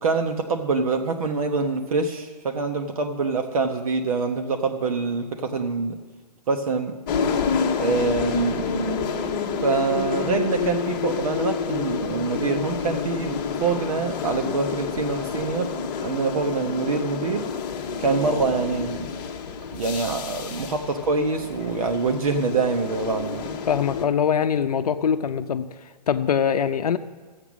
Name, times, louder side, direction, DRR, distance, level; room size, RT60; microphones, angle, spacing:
voice 1, 0.0-6.0 6.5-7.0 7.8-9.2 9.6-15.7 16.0-17.5 18.0-19.1 19.7-23.5, right 4 dB, 55° right, 4 dB, 1.1 m, -25 dB
sound 1, 7.1-24.0, left 5 dB, 30° left, 1.0 m, -29 dB
voice 2, 23.7-25.7 26.1-27.0, left 7 dB, 65° left, 9 dB, 0.7 m, -22 dB
13.5 x 8.0 x 6.1 m, 1.4 s
hypercardioid pair, 150°, 21 cm